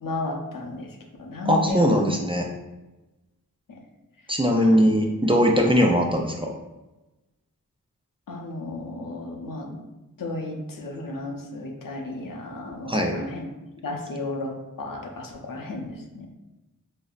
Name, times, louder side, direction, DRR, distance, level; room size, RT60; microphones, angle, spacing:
voice 1, 0.0-2.0 3.7-3.8 4.6-4.8 8.3-9.8 10.2-13.5 13.8-16.3, left 2 dB, 80° left, 0 dB, 0.6 m, -33 dB
voice 2, 1.4-2.5 4.3-6.5 12.9-13.2, equal, 15° right, 1 dB, 0.4 m, -20 dB
5.2 x 2.0 x 2.4 m, 1.1 s
wide cardioid pair, 75°, 33 cm